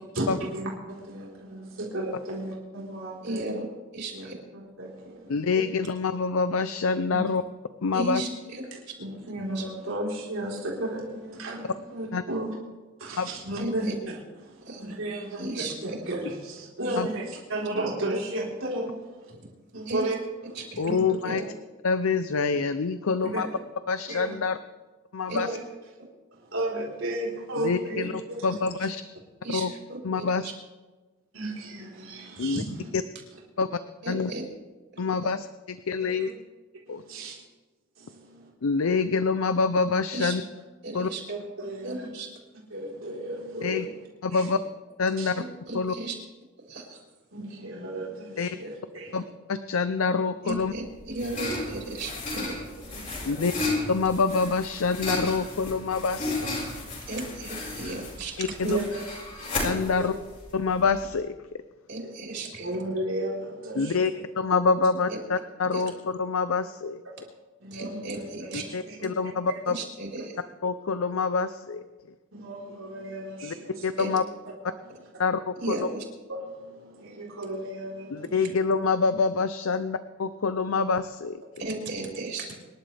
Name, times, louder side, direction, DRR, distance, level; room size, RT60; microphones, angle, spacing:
voice 1, 0.1-3.6 4.1-5.6 7.1-7.2 8.7-12.5 13.0-13.9 14.4-15.5 15.8-19.3 19.7-20.1 20.5-21.1 23.2-23.6 24.1-24.3 25.3-25.6 26.3-28.4 28.8-28.9 31.3-32.9 36.0-36.3 36.9-37.3 38.0-38.5 41.3-42.1 42.7-43.9 44.3-44.5 45.2-45.3 47.3-49.2 52.3-53.5 58.6-59.0 59.4-59.6 59.9-60.1 62.3-64.0 67.6-69.0 72.3-73.8 76.3-78.5, right 1 dB, 80° right, -4 dB, 4.2 m, -34 dB
voice 2, 3.2-3.6 3.9-4.4 7.9-8.6 9.5-9.6 13.6-13.9 14.6-14.8 15.4-15.7 16.8-16.9 19.3-19.4 19.9-20.0 20.5-20.8 21.2-21.4 25.3-25.4 29.4-30.5 34.0-34.4 34.9-35.0 40.1-40.3 40.8-41.2 41.8-42.3 45.3-46.1 46.7-47.0 50.4-52.5 57.1-58.4 61.9-62.7 65.1-65.2 65.7-65.8 67.7-68.6 69.0-69.1 69.7-70.4 74.0-74.1 75.6-76.0 81.6-82.6, right 2 dB, 55° right, -2 dB, 4.4 m, -35 dB
voice 3, 5.3-7.4 7.8-8.2 12.1-12.2 13.2-13.3 17.0-17.1 20.8-21.4 21.8-23.5 23.9-24.6 25.1-25.6 27.6-29.0 29.5-29.7 30.0-30.5 32.4-32.6 33.6-33.8 34.1-34.3 35.0-36.3 36.9-37.0 38.6-40.4 40.9-41.1 43.6-43.9 44.2-44.6 45.0-45.3 45.7-45.9 48.4-48.5 49.1-49.2 49.5-50.7 53.3-53.5 53.9-56.4 58.4-58.8 59.6-60.1 60.5-61.3 63.8-67.0 68.5-69.8 70.6-71.8 73.4-73.5 73.8-74.2 75.2-75.9 78.1-81.4, left 4 dB, 90° left, 12 dB, 0.6 m, -26 dB
sound 1, 50.6-61.1, left 2 dB, 40° left, 5.2 m, -34 dB
26.0 x 11.5 x 3.4 m, 1.2 s
head